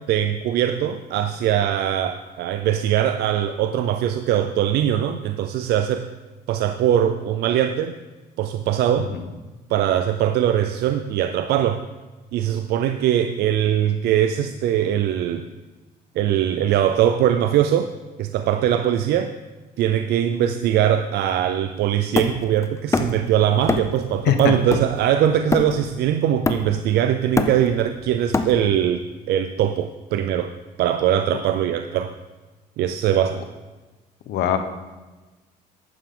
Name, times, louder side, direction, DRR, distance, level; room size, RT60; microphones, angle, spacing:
voice 1, 0.1-6.1 6.5-7.9 8.4-9.1 9.7-11.8 12.3-15.5 16.2-17.9 18.2-19.3 19.8-29.0 29.3-30.5 30.8-32.1 32.8-33.4, right 10 dB, 75° right, 8 dB, 0.6 m, -21 dB
Hammer, 22.2-23.3 23.7-24.0 24.4-26.0 26.5-26.9 27.2-28.9, left 3 dB, 15° left, 0.7 m, -24 dB
voice 2, 34.3-34.6, left 9 dB, 80° left, 8 dB, 1.1 m, -20 dB
11.5 x 9.2 x 3.8 m, 1.2 s
cardioid pair, 110°, 17 cm